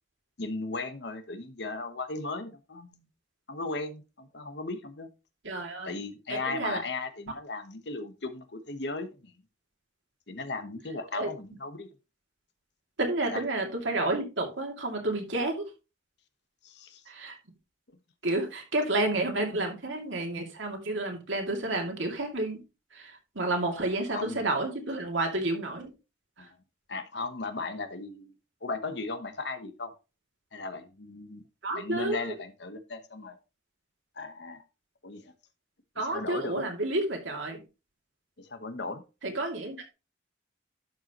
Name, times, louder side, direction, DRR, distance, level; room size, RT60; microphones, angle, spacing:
voice 1, 0.4-3.1 3.5-5.1 5.8-9.3 10.3-11.9 13.3-13.4 16.6-17.0 24.1-24.4 26.4-26.5 26.9-28.3 28.6-29.9 30.5-31.4 31.7-33.4 34.2-34.6 35.0-35.3 35.9-36.6 38.4-39.0, left 3 dB, 70° left, 9 dB, 1.1 m, -36 dB
voice 2, 5.4-5.9 6.3-6.8 11.1-11.3 13.0-15.6 17.1-17.4 18.2-22.6 22.9-25.9 26.4-26.5 31.6-32.3 36.0-37.6 39.2-39.9, right 2 dB, 90° right, 2 dB, 2.4 m, -30 dB
11.5 x 5.6 x 3.0 m, 0.29 s
head